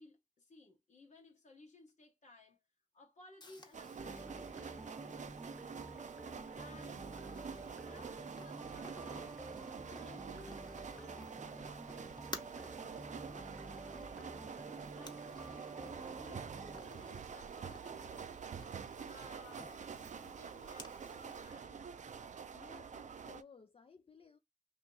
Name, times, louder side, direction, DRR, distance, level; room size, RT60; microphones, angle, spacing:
voice 1, 0.0-2.6 2.9-5.9 6.5-9.4 9.9-15.7 16.1-18.3 19.0-22.0, left 3 dB, 90° left, 1.1 m, -60 dB
Purr, 3.4-21.4, left 2 dB, 35° left, 1.0 m, -57 dB
sound 1, 3.7-23.4, right 6 dB, 80° right, 0.4 m, -47 dB
sound 2, 4.0-16.8, right 2 dB, 15° right, 0.5 m, -51 dB
voice 2, 22.5-24.4, left 5 dB, 50° left, 0.4 m, -59 dB
2.8 x 2.7 x 3.8 m
cardioid pair, 50°, 12 cm